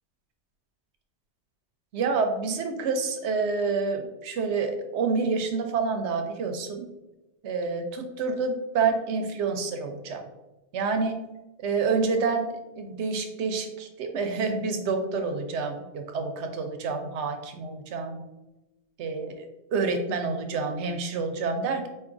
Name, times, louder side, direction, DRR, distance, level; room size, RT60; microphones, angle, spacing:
voice 1, 1.9-6.9 7.4-10.2 10.7-11.2 11.6-18.2 19.0-19.4 19.7-21.9, right 4 dB, 80° right, 5 dB, 0.9 m, -28 dB
4.6 x 2.5 x 2.5 m, 1.0 s
omnidirectional pair, 1.1 m